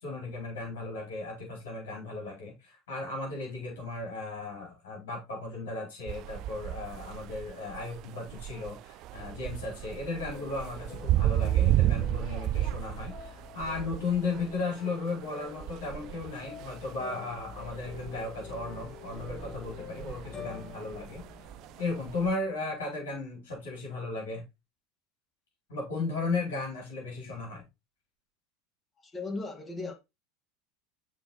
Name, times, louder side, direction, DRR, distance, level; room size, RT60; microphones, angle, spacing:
voice 1, 0.0-21.2 21.8-24.4 25.7-27.6, left 3 dB, 75° left, 4.2 m, -35 dB
sound 1, 6.1-22.3, right 14 dB, 50° right, 0.4 m, -33 dB
sound 2, 10.3-22.5, left 7 dB, 40° left, 2.8 m, -47 dB
voice 2, 29.0-29.9, left 3 dB, 25° left, 2.4 m, -37 dB
7.0 x 4.9 x 4.3 m
hypercardioid pair, 80°, 0 cm